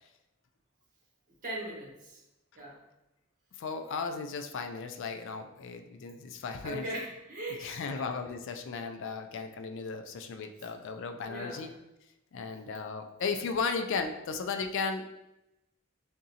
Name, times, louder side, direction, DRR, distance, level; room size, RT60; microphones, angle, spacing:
voice 1, 1.4-2.2 2.5-2.8 6.6-8.1 11.3-11.6, right 1 dB, 40° right, -4 dB, 1.3 m, -39 dB
voice 2, 3.6-6.9 7.6-11.7 12.3-15.0, left 4 dB, 65° left, 7 dB, 0.4 m, -35 dB
3.8 x 3.6 x 2.8 m, 0.91 s
head